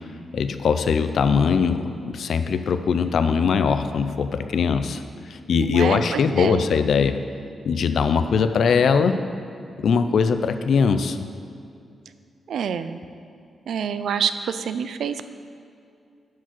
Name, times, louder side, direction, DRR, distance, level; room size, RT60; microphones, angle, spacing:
voice 1, 0.3-5.0 5.3-7.2 7.7-9.2 9.8-11.3, left 6 dB, 65° left, 10 dB, 0.5 m, -21 dB
voice 2, 5.5-6.7 12.5-13.0 13.7-15.2, right 7 dB, 80° right, 11 dB, 0.4 m, -27 dB
10.5 x 4.7 x 6.1 m, 2.5 s
wide cardioid pair, 125°, 0 cm